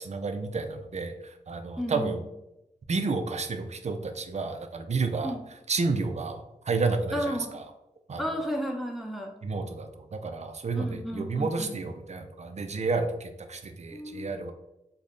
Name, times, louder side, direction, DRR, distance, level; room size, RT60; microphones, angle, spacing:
voice 1, 0.0-2.2 2.9-5.3 5.7-7.6 8.1-8.2 9.4-14.5, right 4 dB, 55° right, 6 dB, 0.5 m, -31 dB
voice 2, 1.8-2.2 5.2-5.4 7.1-7.5 8.2-9.3 10.7-11.7 13.9-14.4, equal, ahead, 1 dB, 0.8 m, -33 dB
3.3 x 2.1 x 3.7 m, 0.88 s
cardioid pair, 55°, 14 cm